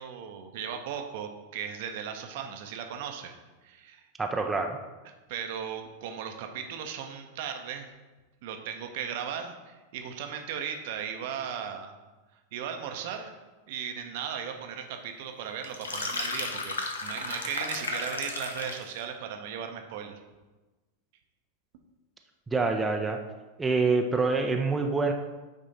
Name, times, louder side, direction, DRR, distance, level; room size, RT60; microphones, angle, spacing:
voice 1, 0.0-3.3 3.6-4.0 5.3-7.9 8.4-11.9 12.5-13.3 13.7-20.2, right 8 dB, 50° right, 5 dB, 0.7 m, -37 dB
voice 2, 4.2-4.8 22.5-23.2 23.6-25.1, right 3 dB, 10° right, 3 dB, 0.5 m, -26 dB
sound 1, 15.6-18.9, left 3 dB, 70° left, 0.7 m, -34 dB
9.0 x 3.6 x 4.0 m, 1.2 s
figure-of-eight pair, 90°, 0 cm